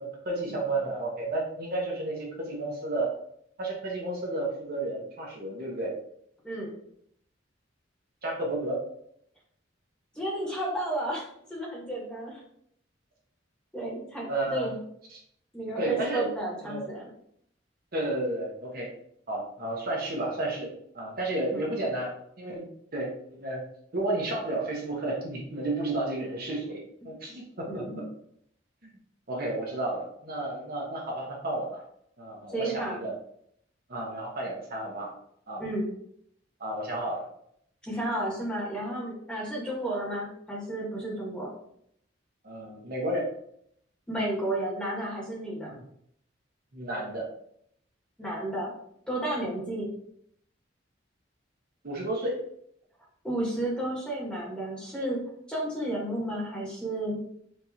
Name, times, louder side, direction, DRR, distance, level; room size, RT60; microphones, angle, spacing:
voice 1, 0.2-3.1 3.6-5.9 8.2-8.8 14.3-14.7 15.1-15.2 15.8-16.2 16.6-16.8 17.9-18.9 19.3-20.7 20.9-22.6 22.9-23.6 23.9-27.8 28.8-28.9 29.3-31.8 32.2-33.1 33.9-35.1 35.5-35.6 36.6-37.3 42.4-43.3 45.6-45.8 46.7-47.2 51.8-52.4, right 2 dB, 50° right, -2 dB, 0.9 m, -32 dB
voice 2, 6.4-6.7 10.1-11.2 11.5-12.4 13.7-14.7 15.5-17.1 21.5-21.7 27.0-27.4 27.7-28.0 32.5-33.0 35.6-35.9 37.8-41.5 44.1-45.7 48.2-48.7 49.1-49.9 53.2-55.2 55.5-57.2, right 1 dB, 5° left, -5 dB, 1.3 m, -32 dB
4.6 x 2.7 x 2.7 m, 0.69 s
head